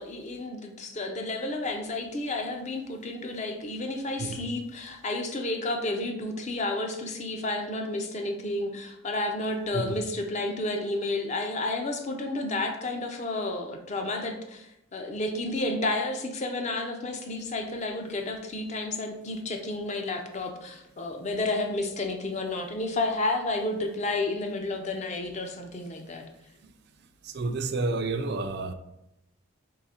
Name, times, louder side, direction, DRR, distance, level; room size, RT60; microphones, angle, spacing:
voice 1, 0.0-26.2, left 2 dB, 35° left, 4 dB, 0.5 m, -31 dB
voice 2, 27.2-28.7, right 3 dB, 50° right, 8 dB, 0.4 m, -30 dB
3.8 x 3.3 x 4.2 m, 0.87 s
head